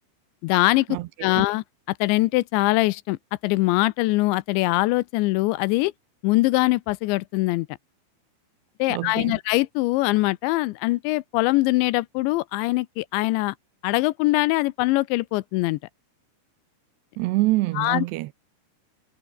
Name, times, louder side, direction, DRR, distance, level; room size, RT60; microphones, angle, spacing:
voice 1, 0.4-0.9 1.2-1.6 2.0-3.2 3.4-5.9 6.2-7.7 8.8-13.6 13.8-15.8 17.8-18.1, left 20 dB, 85° left, 2.9 m, -22 dB
voice 2, 8.9-9.4 17.2-18.3, right 19 dB, 80° right, 2.7 m, -25 dB
omnidirectional pair, 5.3 m